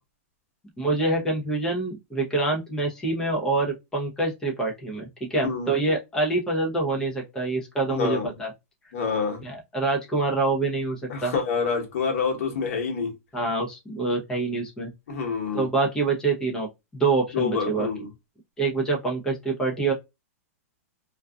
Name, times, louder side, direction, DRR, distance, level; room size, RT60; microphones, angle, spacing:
voice 1, 0.8-8.5 9.4-11.3 13.3-14.9 15.5-16.7 16.9-17.9 18.6-19.9, right 3 dB, 10° left, 0.7 m, -26 dB
voice 2, 5.4-5.7 7.9-8.3 8.9-9.4 11.1-13.1 15.1-15.7 17.3-18.1, left 5 dB, 60° left, 1.1 m, -27 dB
2.5 x 2.3 x 2.3 m
supercardioid pair, 160°, 8 cm